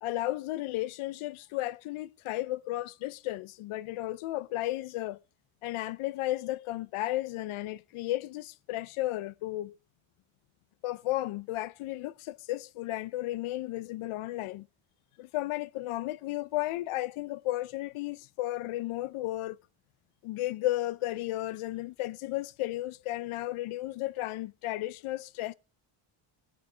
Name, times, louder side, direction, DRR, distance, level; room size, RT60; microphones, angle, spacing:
voice 1, 0.0-5.2 5.6-9.7 10.8-14.7 15.2-19.6 20.2-25.5, left 16 dB, 80° left, 0.6 m, -34 dB
20.5 x 7.5 x 4.9 m
cardioid pair, 170°, 49 cm